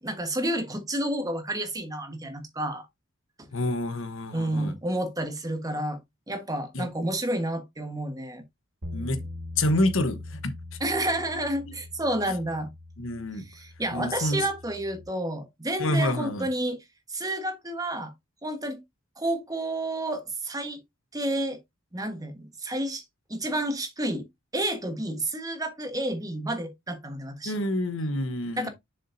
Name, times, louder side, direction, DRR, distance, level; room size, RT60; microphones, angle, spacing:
voice 1, 0.0-2.9 3.4-3.5 4.3-6.0 6.3-8.4 10.8-12.7 13.4-16.8 17.1-18.1 18.4-18.8 19.2-20.8 21.1-21.6 21.9-23.0 23.3-24.3 24.5-27.6 28.6-28.7, right 1 dB, 15° right, 1.3 m, -30 dB
voice 2, 3.5-4.7 6.7-6.9 8.9-9.2 9.6-10.5 13.0-13.4 13.9-14.4 15.8-16.5 27.4-28.7, left 1 dB, 65° left, 1.1 m, -27 dB
sound 1, 8.8-15.1, left 2 dB, 85° right, 2.5 m, -41 dB
7.1 x 6.9 x 2.7 m
head